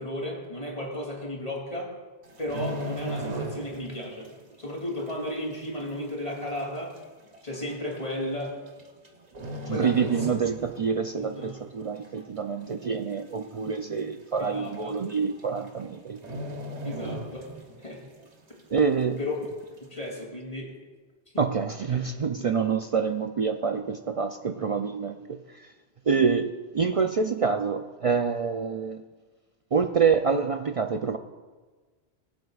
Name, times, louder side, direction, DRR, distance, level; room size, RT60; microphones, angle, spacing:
voice 1, 0.0-1.9 2.4-4.3 4.6-6.9 7.4-8.5 9.7-10.2 11.2-11.6 14.4-14.9 16.8-17.5 17.8-18.0 19.2-19.3 19.8-20.7 21.9-22.0 22.4-22.5, left 1 dB, 35° left, -2 dB, 2.7 m, -34 dB
sound 1, 2.2-4.0 4.3-4.5 5.1-5.2 6.1-6.2 6.4-6.5 7.3-7.6 8.7-9.1 9.3-10.9 11.3-11.5 12.0-12.5 12.8-12.9 13.2-13.3 13.7-13.8 14.7-14.8 15.1-15.4 15.7-15.8 16.2-17.8 18.2-18.3, equal, 40° right, 1.0 m, -36 dB
voice 2, 9.7-16.2 18.7-19.2 21.4-25.7 26.1-29.0 29.7-31.2, right 5 dB, 60° right, 6 dB, 0.3 m, -27 dB
23.5 x 7.9 x 2.4 m, 1.4 s
omnidirectional pair, 1.1 m